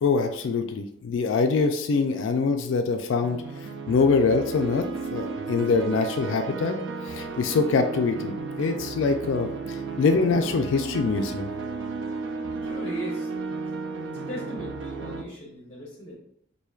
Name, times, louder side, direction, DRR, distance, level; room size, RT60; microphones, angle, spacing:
voice 1, 0.0-3.4 3.9-4.8 5.1-6.8 7.1-11.5, left 4 dB, 65° left, 5 dB, 0.3 m, -24 dB
sound 1, 3.2-15.2, right 4 dB, 60° right, 0.4 m, -34 dB
voice 2, 12.5-13.3 14.1-16.1, equal, 30° left, -3 dB, 0.7 m, -38 dB
4.3 x 2.7 x 2.3 m, 0.72 s
head